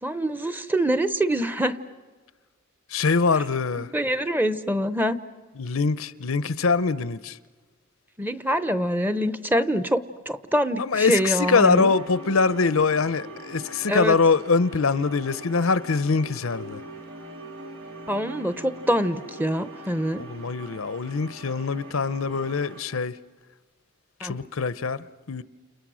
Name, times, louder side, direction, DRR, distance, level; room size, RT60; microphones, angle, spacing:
voice 1, 0.0-1.8 3.8-5.2 8.2-11.9 13.9-14.2 18.1-20.2 24.2-24.3, equal, 10° right, 0.8 m, -25 dB
voice 2, 2.9-3.9 5.6-7.4 10.8-16.8 20.2-23.2 24.2-25.4, left 4 dB, 85° left, 0.8 m, -23 dB
sound 1, 11.7-22.8, right 1 dB, 90° right, 3.9 m, -42 dB
30.0 x 29.5 x 6.3 m
head